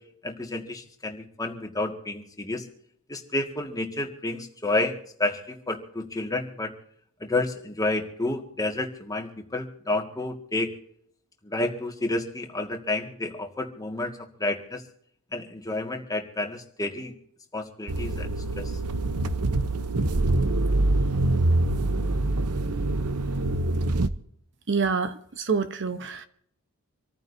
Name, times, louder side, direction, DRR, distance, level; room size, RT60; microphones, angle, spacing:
voice 1, 0.2-2.6 3.1-6.7 7.2-10.7 11.4-14.8 15.3-17.1 17.5-18.7, left 2 dB, 15° left, 1.8 m, -30 dB
sound 1, 17.9-24.1, right 2 dB, 85° right, 0.9 m, -25 dB
voice 2, 24.7-26.3, right 5 dB, 55° right, 1.0 m, -27 dB
26.5 x 14.5 x 2.7 m
head